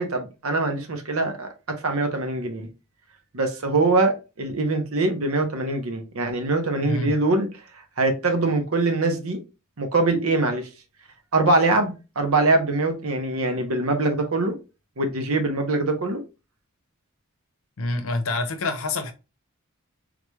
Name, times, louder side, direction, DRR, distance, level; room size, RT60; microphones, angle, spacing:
voice 1, 0.0-2.7 3.3-7.5 8.0-9.4 9.8-10.7 11.3-14.5 15.0-16.2, right 2 dB, 75° right, 0.9 m, -23 dB
voice 2, 6.8-7.1 17.8-19.1, left 2 dB, 70° left, 0.7 m, -27 dB
3.8 x 3.2 x 2.3 m
head